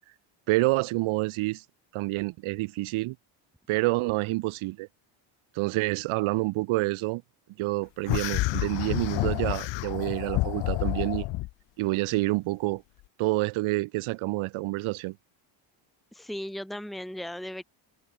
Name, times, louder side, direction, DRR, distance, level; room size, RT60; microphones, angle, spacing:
voice 1, 0.5-1.6 1.9-3.2 3.7-4.9 5.5-7.2 7.6-11.3 11.8-12.8 13.2-15.2, right 21 dB, 90° right, 1.1 m, -28 dB
sound 1, 8.1-11.5, left 19 dB, 65° left, 0.7 m, -29 dB
voice 2, 16.1-17.6, equal, ahead, 2.0 m, -36 dB
cardioid pair, 170°, 47 cm